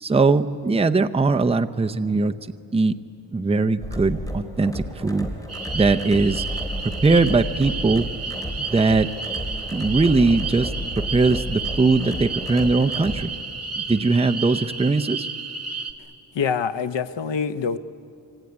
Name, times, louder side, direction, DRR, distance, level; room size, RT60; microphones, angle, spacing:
voice 1, 0.0-2.3 2.7-2.9 3.3-5.3 5.7-6.4 7.0-8.1 8.6-9.1 9.7-13.3 13.8-15.3, right 3 dB, 15° right, 8 dB, 0.6 m, -20 dB
sound 1, 3.8-13.2, equal, 10° left, 2.9 m, -32 dB
sound 2, 5.5-15.9, right 4 dB, 35° right, 1.8 m, -32 dB
voice 2, 16.3-17.8, left 6 dB, 75° left, 12 dB, 1.0 m, -25 dB
25.5 x 24.5 x 9.5 m, 2.5 s
wide cardioid pair, 130°, 44 cm